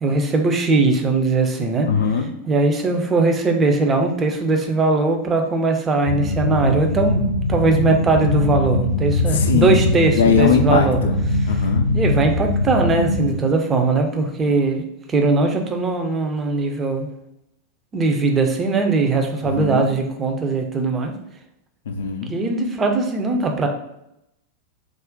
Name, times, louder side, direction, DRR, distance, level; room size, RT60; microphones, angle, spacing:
voice 1, 0.0-1.9 2.5-11.0 11.9-17.1 17.9-21.1 22.3-23.7, right 3 dB, 20° right, 4 dB, 0.4 m, -20 dB
voice 2, 1.9-2.3 9.3-9.9 10.2-11.1 11.5-11.9 19.4-19.9 21.9-22.3, left 6 dB, 60° left, 5 dB, 0.4 m, -20 dB
sound 1, 6.1-13.3, left 2 dB, 80° right, 0.6 m, -21 dB
2.4 x 2.1 x 3.6 m, 0.83 s
figure-of-eight pair, 90°, 0 cm